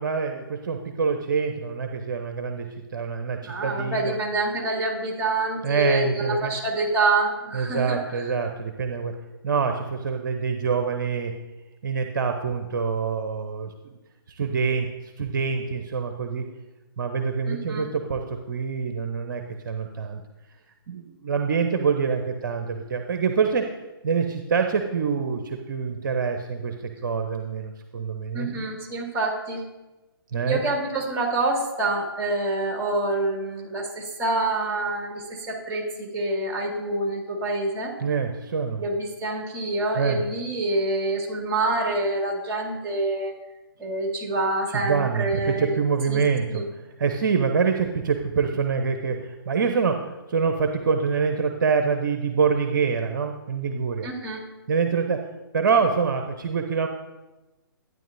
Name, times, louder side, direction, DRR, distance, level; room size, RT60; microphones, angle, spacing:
voice 1, 0.0-4.2 5.6-6.5 7.5-9.1 9.4-11.3 11.8-14.0 14.3-16.4 17.0-20.2 20.9-23.7 24.0-28.6 30.3-30.6 38.0-38.8 39.9-40.2 44.7-46.6 47.0-54.1 54.7-55.3 55.5-56.9, right 5 dB, 55° right, 5 dB, 0.8 m, -25 dB
voice 2, 3.4-8.3 17.5-17.9 28.3-29.7 30.5-37.9 38.8-43.3 43.8-45.8 46.1-46.2 46.5-46.7 54.0-54.4, right 2 dB, 20° right, 0 dB, 2.2 m, -26 dB
12.0 x 9.3 x 2.7 m, 1.1 s
figure-of-eight pair, 130°, 12 cm